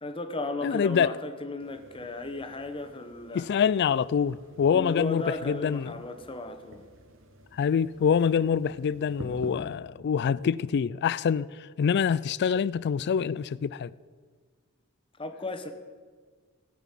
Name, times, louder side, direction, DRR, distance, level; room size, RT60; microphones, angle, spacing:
voice 1, 0.0-3.5 4.7-6.8 15.2-15.7, left 2 dB, 25° left, 1.0 m, -35 dB
voice 2, 0.6-1.1 3.3-5.9 7.5-11.5 11.8-13.9, left 7 dB, 50° left, 0.3 m, -25 dB
sound 1, 1.6-9.6, equal, 65° right, 1.5 m, -49 dB
17.0 x 6.1 x 7.4 m
head